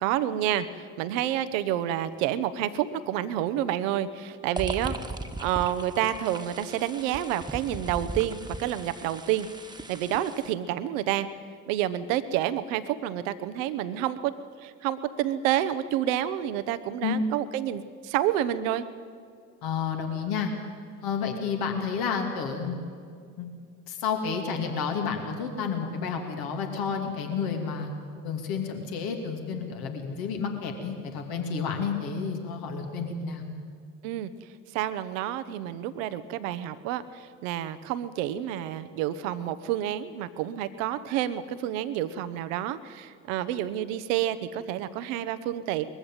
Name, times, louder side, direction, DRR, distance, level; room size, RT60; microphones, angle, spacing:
voice 1, 0.0-5.0 5.4-9.5 9.9-11.3 11.7-14.3 14.6-18.8 34.0-34.3 34.7-45.8, right 12 dB, 75° right, 13 dB, 1.0 m, -29 dB
sound 1, 4.6-10.5, right 2 dB, 10° right, 1.6 m, -38 dB
voice 2, 19.6-20.5 21.0-22.9 23.4-23.5 23.9-27.9 28.2-33.4, left 6 dB, 65° left, 3 dB, 2.8 m, -30 dB
21.0 x 15.0 x 9.1 m, 2.2 s
hypercardioid pair, 50°, 39 cm